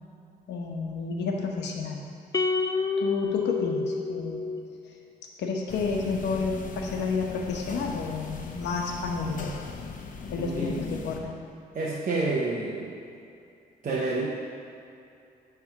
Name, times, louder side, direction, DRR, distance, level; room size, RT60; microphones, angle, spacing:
voice 1, 0.5-2.0 3.0-4.4 5.4-9.5 10.3-10.7 11.0-11.3, left 4 dB, 85° left, 1 dB, 1.0 m, -30 dB
sound 1, 2.3-4.8, left 5 dB, 20° left, 0.4 m, -28 dB
sound 2, 5.7-11.2, left 4 dB, 50° left, 0.8 m, -39 dB
voice 2, 10.4-10.8 11.7-13.0 13.8-14.3, right 3 dB, 50° right, -5 dB, 1.0 m, -29 dB
9.5 x 3.5 x 5.8 m, 2.6 s
cardioid pair, 100°, 17 cm